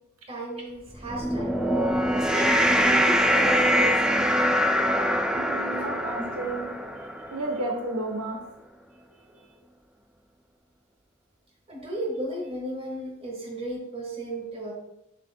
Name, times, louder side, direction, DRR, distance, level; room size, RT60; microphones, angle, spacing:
voice 1, 0.3-1.5 2.1-4.3 5.7-6.1 11.7-14.7, right 1 dB, 25° right, -1 dB, 1.5 m, -34 dB
sound 1, 1.0-7.5, equal, 5° right, 0.3 m, -23 dB
voice 2, 5.3-6.7 7.3-8.4, right 2 dB, 75° right, 1 dB, 1.1 m, -32 dB
7.1 x 6.5 x 2.2 m, 0.87 s
head